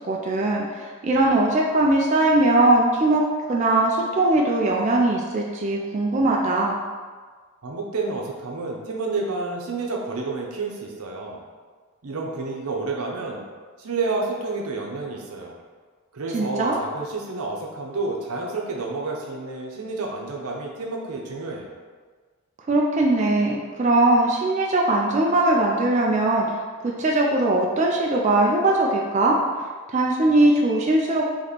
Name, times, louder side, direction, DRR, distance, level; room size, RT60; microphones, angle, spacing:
voice 1, 0.0-3.2 3.5-6.8 16.3-16.8 22.7-26.5 26.8-29.3 29.9-31.3, right 2 dB, 35° right, -1 dB, 0.3 m, -20 dB
voice 2, 7.6-11.4 12.0-13.4 13.8-15.5 16.1-21.7, right 3 dB, 90° right, -1 dB, 0.7 m, -30 dB
3.0 x 3.0 x 4.1 m, 1.5 s
head